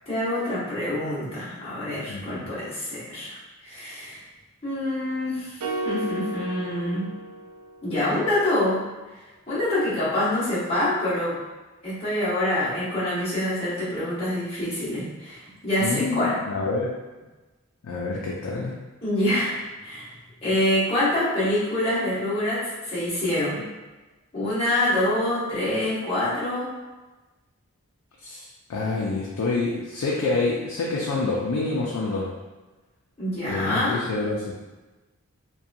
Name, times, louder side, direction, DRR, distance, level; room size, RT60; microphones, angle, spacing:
voice 1, 0.1-4.2 4.6-5.6 5.8-7.1 7.8-8.8 9.5-11.4 11.8-16.4 19.0-20.1 20.4-23.6 24.3-26.7 33.2-34.0, left 1 dB, 25° left, -11 dB, 1.0 m, -26 dB
voice 2, 2.1-2.5 15.8-16.9 17.8-18.8 28.2-32.3 33.5-34.5, left 3 dB, 85° left, -4 dB, 0.4 m, -27 dB
sound 1, 5.6-7.9, right 1 dB, 80° right, 0.4 m, -33 dB
2.7 x 2.2 x 2.4 m, 1.2 s
head